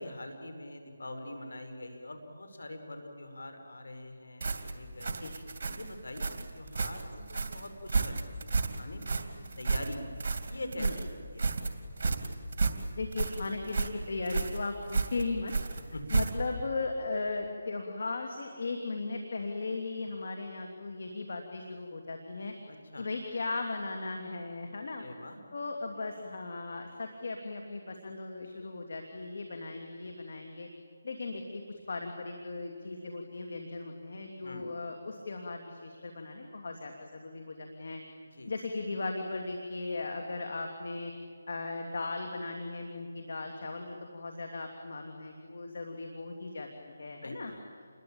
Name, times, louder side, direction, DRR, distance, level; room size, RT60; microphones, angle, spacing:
voice 1, 0.0-5.2 5.6-9.3 9.6-10.0 10.4-11.9 15.9-16.0 22.7-23.1 25.0-25.4 34.4-34.6 38.3-38.5 47.2-47.6, left 1 dB, 85° left, 7 dB, 5.1 m, -44 dB
sound 1, 4.4-16.6, right 4 dB, 50° right, 2.6 m, -32 dB
voice 2, 12.9-15.5 16.1-22.5 23.0-25.1 25.5-30.7 31.0-38.0 38.5-41.1 41.5-47.5, left 3 dB, 60° left, 3 dB, 3.0 m, -37 dB
29.0 x 21.5 x 9.0 m, 2.1 s
figure-of-eight pair, 165°, 0 cm